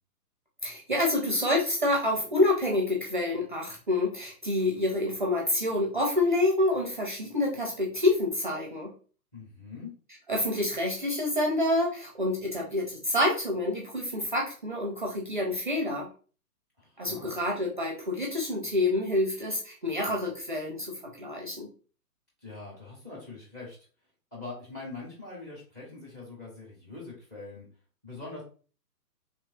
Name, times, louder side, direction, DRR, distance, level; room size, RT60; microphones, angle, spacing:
voice 1, 0.6-8.9 10.3-16.1 17.0-21.7, left 1 dB, 35° right, 0 dB, 0.5 m, -27 dB
voice 2, 9.3-9.9 16.8-17.4 22.4-23.8 24.3-27.7 28.0-28.4, left 3 dB, 10° left, -3 dB, 0.6 m, -43 dB
3.1 x 3.0 x 2.6 m, 0.38 s
figure-of-eight pair, 125°, 48 cm